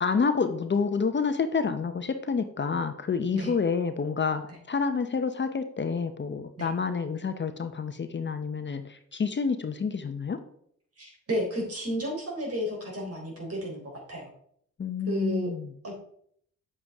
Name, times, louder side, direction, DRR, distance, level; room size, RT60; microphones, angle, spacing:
voice 1, 0.0-10.4 14.8-15.7, left 5 dB, 35° left, 9 dB, 0.8 m, -28 dB
voice 2, 11.0-14.3 15.1-15.5 15.8-16.0, equal, 50° right, 0 dB, 3.8 m, -32 dB
8.6 x 7.3 x 3.6 m, 0.66 s
cardioid pair, 65°, 30 cm